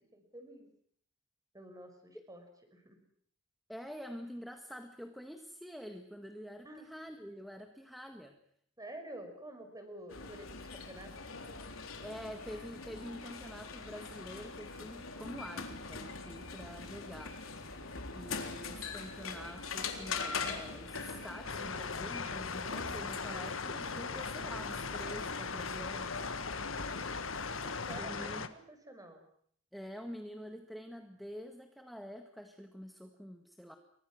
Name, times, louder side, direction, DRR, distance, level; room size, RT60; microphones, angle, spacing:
voice 1, 0.1-0.7 1.5-2.4 2.7-3.0 6.6-6.9 8.8-12.0 27.6-29.2, right 1 dB, 20° right, 6 dB, 5.9 m, -50 dB
voice 2, 3.7-8.4 12.0-17.4 18.1-26.2 27.9-28.4 29.7-33.8, equal, ahead, 5 dB, 1.8 m, -47 dB
sound 1, 10.1-28.0, left 4 dB, 85° left, 3.8 m, -43 dB
sound 2, 21.4-28.5, left 5 dB, 70° left, 1.7 m, -39 dB
29.5 x 23.5 x 6.3 m, 0.63 s
head